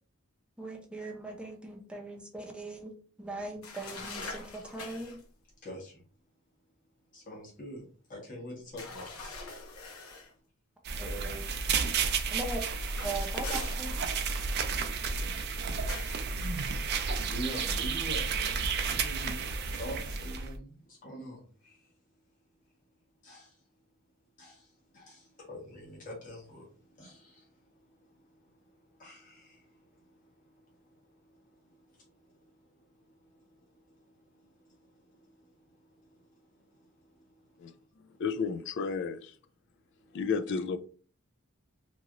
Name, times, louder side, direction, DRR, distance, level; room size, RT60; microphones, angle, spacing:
voice 1, 0.6-2.9 3.2-5.2 11.0-11.4 12.3-12.6 13.0-13.9, right 2 dB, 5° right, 0.6 m, -39 dB
sound 1, 3.6-5.2 8.8-10.3 12.7-14.4 15.9-16.2, left 3 dB, 80° left, 0.8 m, -43 dB
voice 2, 5.6-6.0 7.1-7.8 8.1-9.4 11.6-11.9 17.1-21.9 23.2-23.6 24.4-37.8 38.1-38.2 40.0-40.2, equal, 40° left, 1.4 m, -47 dB
sound 2, 10.8-20.6, right 5 dB, 50° right, 0.4 m, -32 dB
sound 3, 13.5-14.4, right 4 dB, 65° right, 0.8 m, -44 dB
voice 3, 38.2-39.3 40.1-40.8, left 5 dB, 55° left, 0.3 m, -32 dB
2.9 x 2.8 x 2.5 m
head